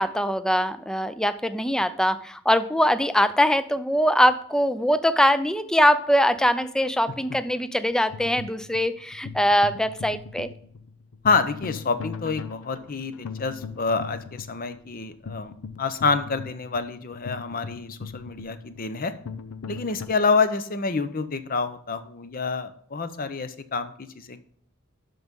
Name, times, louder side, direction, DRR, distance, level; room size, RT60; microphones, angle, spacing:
voice 1, 0.0-10.5, equal, 5° left, 13 dB, 0.4 m, -22 dB
sound 1, 8.1-20.1, left 5 dB, 85° left, 0.6 m, -39 dB
voice 2, 11.2-15.5 15.8-19.1 19.7-24.4, left 4 dB, 45° left, 11 dB, 0.7 m, -27 dB
12.0 x 5.4 x 3.7 m, 0.62 s
head